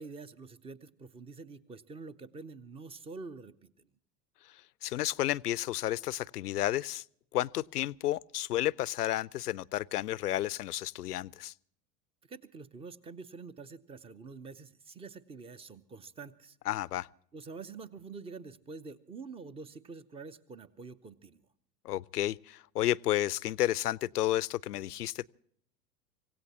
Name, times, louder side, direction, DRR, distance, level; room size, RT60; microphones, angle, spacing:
voice 1, 0.0-3.9 12.3-16.6 17.3-21.5, right 4 dB, 10° right, 0.6 m, -46 dB
voice 2, 4.8-7.0 7.3-11.5 16.7-17.1 21.8-25.3, left 14 dB, 70° left, 0.5 m, -31 dB
26.5 x 17.0 x 2.8 m
figure-of-eight pair, 85°, 49 cm